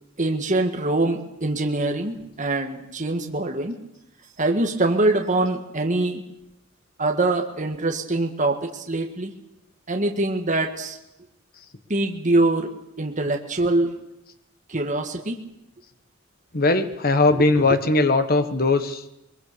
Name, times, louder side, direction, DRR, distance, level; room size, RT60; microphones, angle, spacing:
voice 1, 0.2-3.8 4.4-6.2 7.0-9.3 9.9-11.0 11.9-12.7 13.0-13.9 14.7-15.4 17.7-17.8, right 2 dB, 35° right, 2 dB, 1.8 m, -23 dB
voice 2, 16.5-19.0, left 3 dB, 45° left, 9 dB, 1.3 m, -19 dB
22.5 x 22.0 x 6.9 m, 0.85 s
head